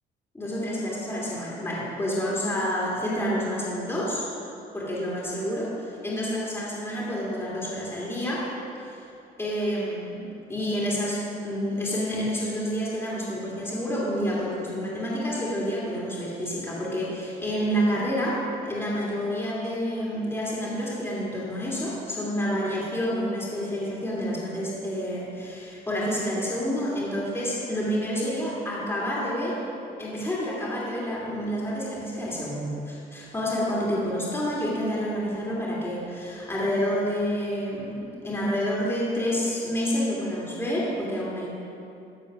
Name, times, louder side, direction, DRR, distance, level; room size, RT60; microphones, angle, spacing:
voice 1, 0.3-4.3 4.7-8.4 9.4-10.2 10.5-18.4 18.7-29.6 30.0-41.5, equal, 15° left, -6 dB, 2.5 m, -28 dB
13.5 x 4.6 x 5.9 m, 2.7 s
cardioid pair, 110°, 17 cm